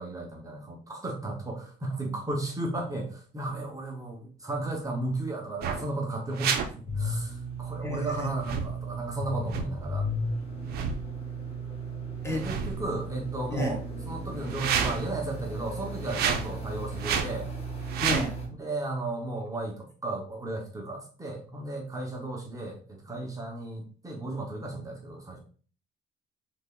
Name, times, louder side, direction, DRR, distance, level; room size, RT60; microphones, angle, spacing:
voice 1, 0.0-10.1 12.3-13.8 14.1-17.5 18.6-25.4, right 2 dB, 20° right, 0 dB, 0.7 m, -34 dB
sound 1, 5.6-5.9 6.3-6.7 8.4-8.7 9.5-9.7 10.6-11.0 12.2-13.0 14.4-15.1 16.0-16.5 17.0-17.3 17.8-18.3, right 7 dB, 70° right, 0.5 m, -30 dB
sound 2, 6.9-18.5, right 1 dB, 35° left, 1.1 m, -35 dB
voice 2, 7.8-8.3 12.2-12.4 13.5-13.8 18.0-18.3, left 1 dB, 15° left, 1 dB, 0.8 m, -31 dB
3.3 x 3.3 x 2.2 m, 0.41 s
cardioid pair, 110°, 17 cm